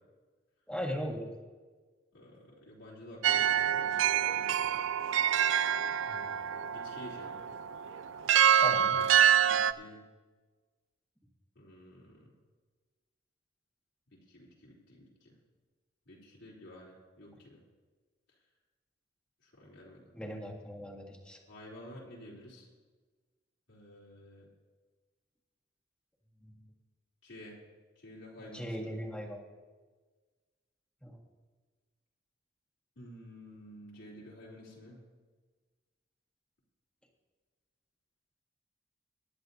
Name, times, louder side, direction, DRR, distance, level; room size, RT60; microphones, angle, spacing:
voice 1, 0.7-1.3 6.1-6.4 8.6-9.0 20.1-21.4 26.4-26.7 28.5-29.4 31.0-31.2, equal, 5° left, -1 dB, 1.7 m, -39 dB
voice 2, 2.1-4.8 6.7-7.4 9.4-10.0 11.6-12.3 14.1-15.3 16.1-17.6 19.4-20.0 21.5-22.7 23.7-24.5 27.2-27.6 28.0-28.9 33.0-35.0, equal, 90° left, -6 dB, 3.4 m, -51 dB
sound 1, 3.2-9.7, right 9 dB, 85° right, 0.4 m, -26 dB
22.0 x 10.5 x 2.7 m, 1.4 s
head